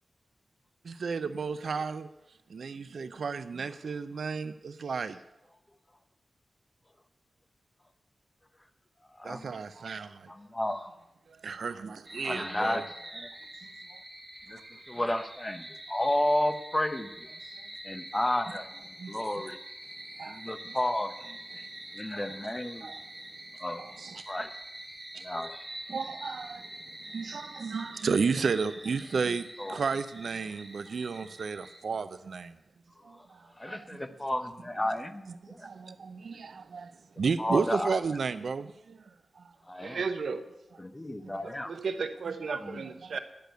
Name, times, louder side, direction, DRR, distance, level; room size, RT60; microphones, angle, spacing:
voice 1, 0.8-2.1 2.5-5.2 9.2-10.3 11.3-12.8 19.0-19.2 20.2-20.4 20.7-20.8 21.5-21.7 22.8-23.0 23.8-24.2 25.1-25.2 25.9-26.7 27.1-32.6 33.0-34.0 35.4-39.0 39.4-39.5 41.2-41.3 42.6-42.7 43.0-43.1, right 5 dB, 70° right, 0.5 m, -33 dB
voice 2, 9.2-9.5 10.3-10.9 12.2-13.3 14.5-14.6 14.9-17.3 17.8-19.6 20.3-21.1 21.9-22.9 23.6-23.8 24.3-24.5 25.2-25.6 29.6-29.8 33.6-35.7 37.4-38.0 39.7-40.0 40.8-41.7 42.5-42.8, left 1 dB, 15° left, 0.8 m, -32 dB
sound 1, 12.0-31.8, right 1 dB, 25° right, 3.1 m, -45 dB
voice 3, 39.8-40.4 41.4-43.2, right 5 dB, 90° right, 0.9 m, -34 dB
10.5 x 6.6 x 9.0 m
wide cardioid pair, 140°, 0 cm